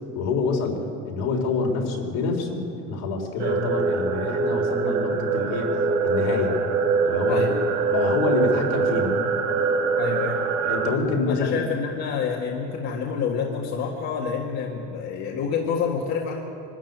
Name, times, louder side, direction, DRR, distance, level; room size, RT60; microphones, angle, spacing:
voice 1, 0.1-6.6 7.0-7.6 7.9-9.2 10.6-11.6, left 4 dB, 80° left, 1 dB, 3.9 m, -26 dB
sound 1, 3.4-11.0, right 4 dB, 80° right, 2.1 m, -24 dB
voice 2, 10.0-10.4 11.3-16.4, left 6 dB, 55° left, -1 dB, 1.9 m, -28 dB
23.5 x 13.0 x 9.4 m, 2.9 s
cardioid pair, 165°, 32 cm